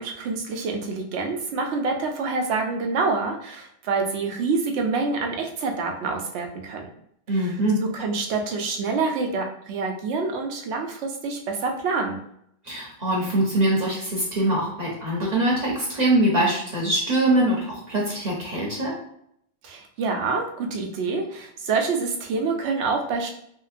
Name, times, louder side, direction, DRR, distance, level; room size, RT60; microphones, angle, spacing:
voice 1, 0.0-6.9 7.3-7.5 7.8-12.2 19.6-23.3, right 4 dB, 85° right, 3 dB, 0.9 m, -27 dB
voice 2, 7.3-7.8 12.6-18.9, right 1 dB, 45° right, -4 dB, 0.8 m, -23 dB
3.0 x 2.8 x 2.5 m, 0.72 s
omnidirectional pair, 1.1 m